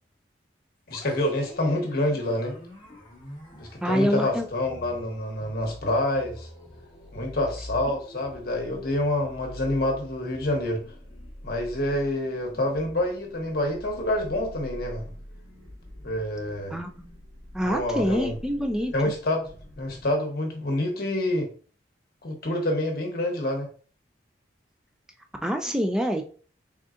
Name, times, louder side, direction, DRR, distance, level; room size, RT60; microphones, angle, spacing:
voice 1, 0.9-2.6 3.6-6.5 7.1-10.8 11.4-15.0 16.0-16.8 17.6-18.3 18.9-21.5 22.2-23.7, left 1 dB, 50° left, 1 dB, 1.0 m, -27 dB
sound 1, 0.9-20.1, left 1 dB, 25° left, 0.9 m, -45 dB
voice 2, 3.8-4.5 16.7-17.1 17.5-18.9 25.4-26.2, equal, 5° right, 4 dB, 0.3 m, -26 dB
3.8 x 3.6 x 2.5 m, 0.42 s
head